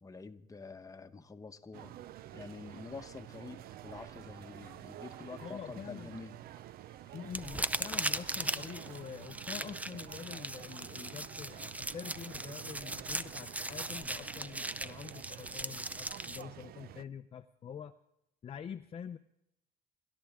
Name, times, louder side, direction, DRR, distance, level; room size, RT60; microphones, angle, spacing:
voice 1, 0.0-2.0 2.3-6.4, left 4 dB, 20° left, 7 dB, 1.1 m, -47 dB
sound 1, 1.7-17.0, right 13 dB, 65° right, 0.5 m, -49 dB
sound 2, 2.3-7.5, right 1 dB, 25° right, 4.8 m, -65 dB
voice 2, 5.4-6.1 7.1-17.9 18.4-19.2, left 7 dB, 35° left, 7 dB, 0.6 m, -46 dB
sound 3, 7.3-16.4, right 2 dB, 10° right, 0.6 m, -38 dB
28.5 x 12.5 x 3.6 m, 0.83 s
cardioid pair, 110°, 17 cm